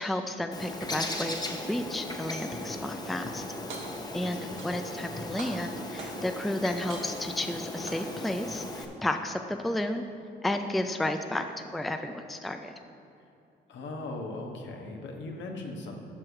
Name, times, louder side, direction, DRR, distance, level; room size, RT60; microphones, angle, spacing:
voice 1, 0.0-3.4 4.1-10.0 10.4-12.7, left 1 dB, ahead, 6 dB, 0.4 m, -32 dB
Bird, 0.5-8.9, left 1 dB, 20° left, 0.9 m, -37 dB
sound 1, 3.7-4.2 4.6-5.1 5.4-6.4 6.9-7.4 7.9-8.4, right 4 dB, 80° right, 1.6 m, -44 dB
voice 2, 4.2-4.5 13.7-15.9, left 2 dB, 65° left, 2 dB, 1.3 m, -39 dB
7.8 x 6.3 x 5.9 m, 2.7 s
cardioid pair, 90°, 20 cm